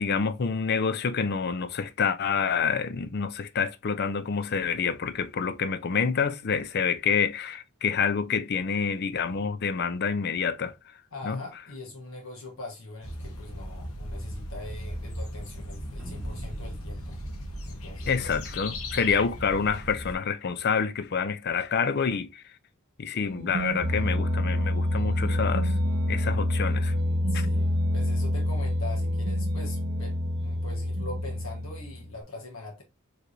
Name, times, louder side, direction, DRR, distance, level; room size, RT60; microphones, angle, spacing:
voice 1, 0.0-10.7 11.2-11.4 18.1-22.4 23.0-25.8 26.1-26.9 27.3-27.5, left 6 dB, 50° left, 0.5 m, -27 dB
voice 2, 11.1-17.2 17.7-18.3 27.3-32.8, left 2 dB, 65° left, 1.3 m, -42 dB
sound 1, 13.0-20.1, equal, 90° left, 1.0 m, -37 dB
sound 2, 16.0-18.7, right 1 dB, ahead, 1.5 m, -44 dB
sound 3, 23.3-32.1, left 1 dB, 60° right, 0.9 m, -27 dB
4.7 x 3.3 x 2.6 m
head